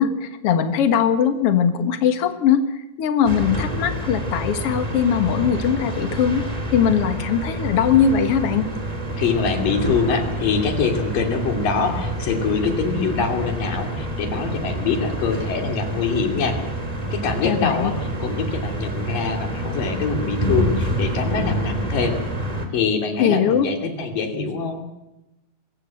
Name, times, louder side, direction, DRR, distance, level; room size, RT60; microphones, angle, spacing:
voice 1, 0.0-2.6 3.0-6.4 6.7-8.7 17.4-17.9 23.2-23.7, left 8 dB, 50° left, 9 dB, 2.2 m, -20 dB
sound 1, 3.2-22.7, right 1 dB, 10° right, 2.5 m, -28 dB
voice 2, 9.2-16.6 17.1-22.2 22.7-24.8, left 5 dB, 70° left, 4 dB, 4.4 m, -24 dB
25.0 x 15.0 x 7.8 m, 0.94 s
omnidirectional pair, 4.0 m